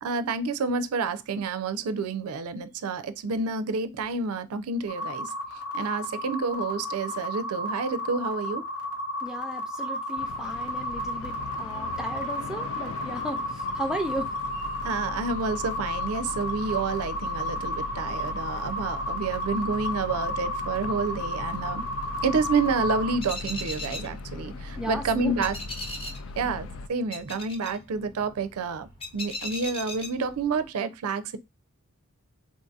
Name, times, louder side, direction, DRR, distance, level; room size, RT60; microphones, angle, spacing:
voice 1, 0.0-5.3 5.7-8.6 14.8-21.8 22.2-25.6 26.4-31.4, right 4 dB, 85° right, 0.4 m, -29 dB
sound 1, 4.9-23.2, left 1 dB, 85° left, 0.8 m, -33 dB
voice 2, 9.2-14.3 24.8-25.4 26.4-26.5, equal, 5° right, 0.4 m, -35 dB
sound 2, 10.2-26.9, left 3 dB, 65° left, 0.4 m, -40 dB
sound 3, 21.6-30.7, left 2 dB, 25° left, 0.9 m, -40 dB
3.7 x 2.6 x 2.3 m
head